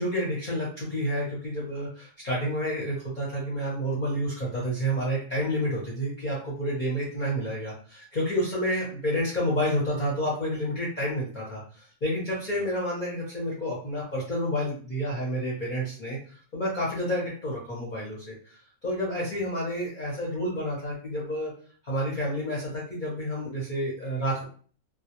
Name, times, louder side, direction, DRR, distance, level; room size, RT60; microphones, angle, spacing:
voice 1, 0.0-11.6 12.0-16.2 16.5-21.5 21.8-24.4, equal, 45° left, -6 dB, 0.7 m, -29 dB
2.2 x 2.2 x 2.8 m, 0.43 s
omnidirectional pair, 1.4 m